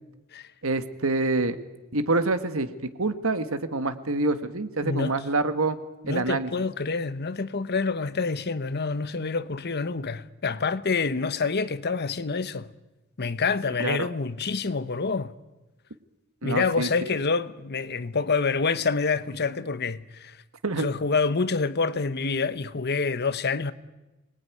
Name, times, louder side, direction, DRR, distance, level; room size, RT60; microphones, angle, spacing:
voice 1, 0.6-1.6 1.9-2.7 3.0-5.8 6.1-6.6 13.8-14.1 16.4-16.9 20.6-20.9, right 2 dB, 70° right, 1.6 m, -26 dB
voice 2, 4.8-5.1 6.0-12.7 13.2-15.3 16.4-20.4 20.8-23.7, left 4 dB, 50° left, 1.0 m, -27 dB
26.0 x 20.5 x 9.5 m
head